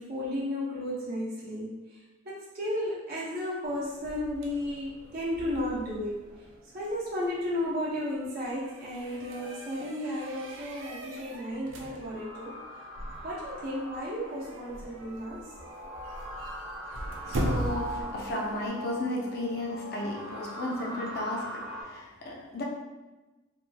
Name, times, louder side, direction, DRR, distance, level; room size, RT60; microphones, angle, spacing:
voice 1, 0.0-1.8 2.2-6.2 6.7-12.5 13.2-15.4, left 1 dB, 50° right, -8 dB, 0.8 m, -33 dB
sound 1, 3.6-18.7, right 1 dB, 75° right, 0.4 m, -40 dB
sound 2, 12.0-21.8, equal, 5° right, 0.7 m, -42 dB
voice 2, 17.2-22.6, left 1 dB, 55° left, -2 dB, 0.6 m, -34 dB
2.8 x 2.7 x 2.3 m, 1.1 s
head